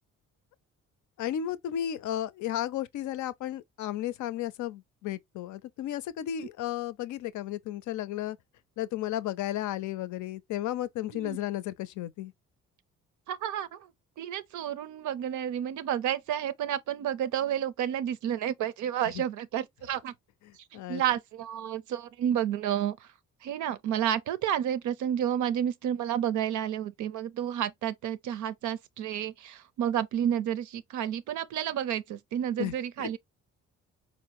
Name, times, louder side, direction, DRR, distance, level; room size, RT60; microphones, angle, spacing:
voice 1, 1.2-8.4 8.8-12.3 19.1-19.2 20.5-21.0 32.6-33.1, left 12 dB, 75° left, 0.5 m, -34 dB
voice 2, 13.3-13.9 14.2-20.1 20.7-23.1 23.4-33.2, right 10 dB, 75° right, 0.6 m, -31 dB
4.3 x 2.1 x 2.9 m
cardioid pair, 90°, 30 cm